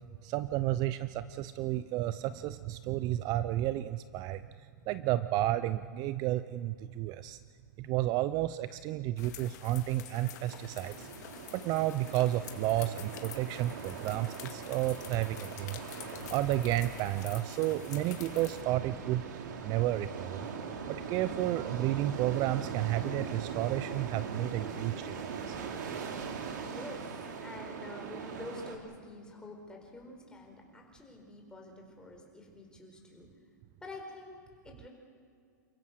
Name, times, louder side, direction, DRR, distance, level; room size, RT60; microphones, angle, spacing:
voice 1, 0.2-4.5 4.9-7.4 7.8-11.1 11.5-15.8 16.3-20.5 20.9-25.1 25.5-25.6, right 14 dB, 40° right, 14 dB, 0.6 m, -32 dB
sound 1, 9.2-18.6, left 10 dB, 65° left, 2.1 m, -48 dB
sound 2, 10.1-28.8, right 6 dB, 70° right, 3.0 m, -41 dB
voice 2, 26.7-33.3 33.8-34.4 34.6-34.9, left 2 dB, 10° left, 1 dB, 4.8 m, -47 dB
29.0 x 16.0 x 6.5 m, 2.3 s
hypercardioid pair, 115°, 10 cm